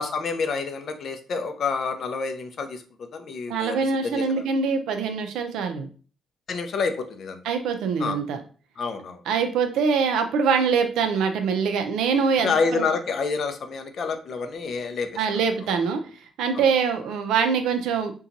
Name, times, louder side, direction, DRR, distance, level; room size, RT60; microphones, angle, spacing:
voice 1, 0.0-4.5 6.5-7.4 8.0-8.2 8.8-9.2 12.4-15.2 15.6-15.7 16.5-16.7, left 5 dB, 60° left, 8 dB, 0.4 m, -28 dB
voice 2, 3.5-5.9 7.4-8.4 9.3-12.9 15.2-16.0 16.4-18.1, right 5 dB, 85° right, 6 dB, 0.4 m, -24 dB
2.8 x 2.2 x 2.5 m, 0.39 s
cardioid pair, 90°, 0 cm